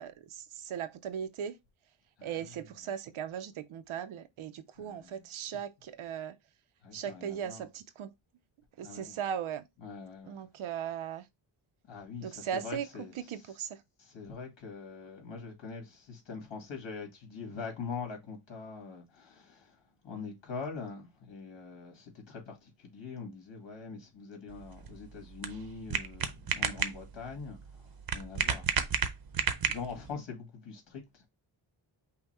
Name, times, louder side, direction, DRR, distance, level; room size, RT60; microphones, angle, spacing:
voice 1, 0.0-1.6 2.2-6.4 6.9-8.1 8.8-9.6 10.3-11.3 12.2-12.9 13.2-13.8, right 8 dB, 85° right, 0.6 m, -38 dB
voice 2, 4.8-5.2 6.8-7.7 8.8-9.2 9.8-10.4 11.9-13.4 14.0-28.7 29.3-31.3, left 5 dB, 65° left, 2.0 m, -43 dB
sound 1, 24.5-30.1, right 7 dB, 50° right, 0.7 m, -33 dB
5.7 x 2.2 x 4.2 m
wide cardioid pair, 145°, 47 cm